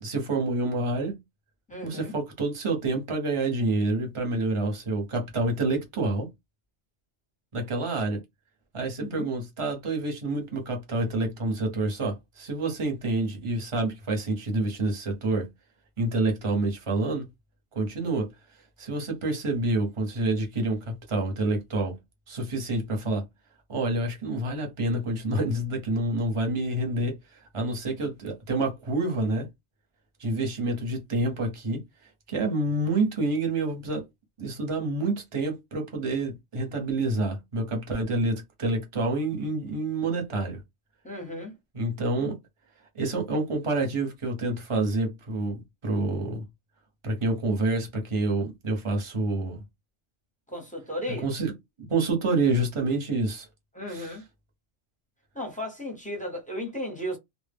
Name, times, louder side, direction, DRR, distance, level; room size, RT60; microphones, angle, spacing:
voice 1, 0.0-1.2 1.8-6.3 7.5-8.2 8.7-15.5 16.0-17.3 17.7-18.3 18.8-21.9 22.3-23.2 23.7-27.2 27.5-29.5 30.2-31.8 32.3-34.0 34.4-40.6 41.7-42.4 42.9-46.4 47.0-49.6 51.1-51.5 51.8-53.5 53.9-54.2, right 2 dB, 30° right, 0.7 m, -28 dB
voice 2, 1.7-2.1 9.0-9.3 41.0-41.5 50.5-51.3 53.7-54.2 55.3-57.2, left 1 dB, 10° left, 0.6 m, -35 dB
2.1 x 2.1 x 3.3 m
omnidirectional pair, 1.2 m